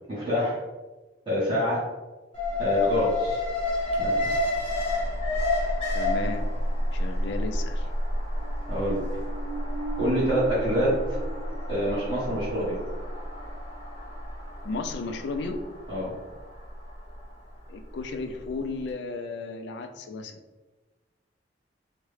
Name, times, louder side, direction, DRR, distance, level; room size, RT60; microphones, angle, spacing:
voice 1, 0.1-0.6 1.3-1.8 2.6-3.4 4.0-4.3 8.7-9.0 10.0-10.9 11.7-12.8 15.9-16.1, equal, 25° right, -11 dB, 1.1 m, -26 dB
Alarm, 2.3-18.4 18.8-18.9, left 1 dB, 30° left, 0.8 m, -30 dB
voice 2, 5.9-6.5 6.9-7.9 14.6-15.6 17.7-20.4, left 3 dB, 65° left, 5 dB, 0.3 m, -34 dB
sound 1, 8.2-14.5 14.8-14.9, right 4 dB, 55° right, 0.5 m, -41 dB
3.5 x 2.1 x 3.2 m, 1.2 s
head